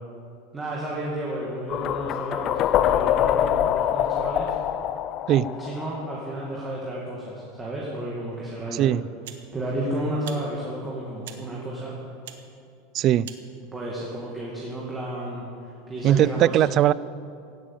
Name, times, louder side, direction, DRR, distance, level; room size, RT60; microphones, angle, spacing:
voice 1, 0.5-4.5 5.4-8.9 9.5-11.9 13.7-16.6, right 1 dB, 10° right, -5 dB, 2.2 m, -32 dB
sound 1, 1.7-6.6, left 11 dB, 35° left, 0.5 m, -24 dB
sound 2, 8.3-8.4 9.2-9.5 10.2-10.4 11.2-11.4 12.2-12.4 13.2-13.4, right 10 dB, 85° right, 1.5 m, -41 dB
voice 2, 8.7-9.0 12.9-13.3 16.0-16.9, right 12 dB, 35° right, 20 dB, 0.3 m, -19 dB
17.0 x 8.6 x 9.2 m, 2.6 s
supercardioid pair, 160°, 0 cm